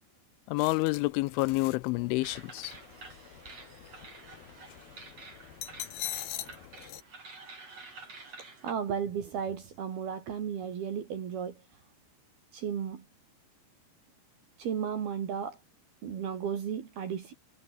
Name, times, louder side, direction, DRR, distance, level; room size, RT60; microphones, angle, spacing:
voice 1, 0.5-2.7, left 23 dB, 85° left, 3.1 m, -28 dB
sound 1, 0.6-7.0, left 11 dB, 60° left, 3.3 m, -44 dB
sound 2, 2.2-8.7, right 3 dB, 35° right, 7.1 m, -49 dB
voice 2, 8.6-11.6 12.5-13.0 14.6-15.6 16.0-17.3, right 7 dB, 60° right, 4.3 m, -34 dB
omnidirectional pair, 5.4 m